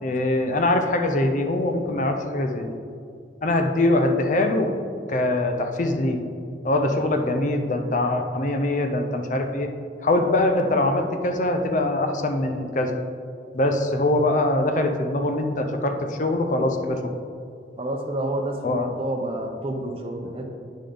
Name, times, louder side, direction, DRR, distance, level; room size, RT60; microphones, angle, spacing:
voice 1, 0.0-2.7 3.4-4.7 5.1-6.2 6.6-9.7 10.0-13.0 13.5-17.0 18.6-18.9, left 2 dB, 45° left, 5 dB, 0.6 m, -23 dB
voice 2, 17.8-20.5, right 1 dB, 30° right, 1 dB, 0.7 m, -29 dB
8.9 x 5.1 x 3.8 m, 2.4 s
head